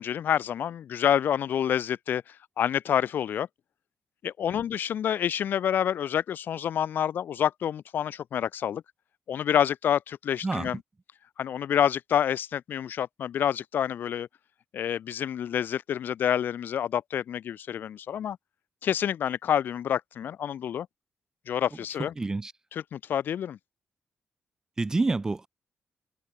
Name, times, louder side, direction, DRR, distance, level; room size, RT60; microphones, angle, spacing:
voice 1, 0.0-3.5 4.2-8.8 9.3-10.8 11.4-14.3 14.7-18.4 18.8-20.9 21.5-22.1 22.7-23.6, left 9 dB, 65° left, 6.8 m, -28 dB
voice 2, 22.2-22.5 24.8-25.5, right 3 dB, 15° right, 1.7 m, -27 dB
wide cardioid pair, 170°, 4 cm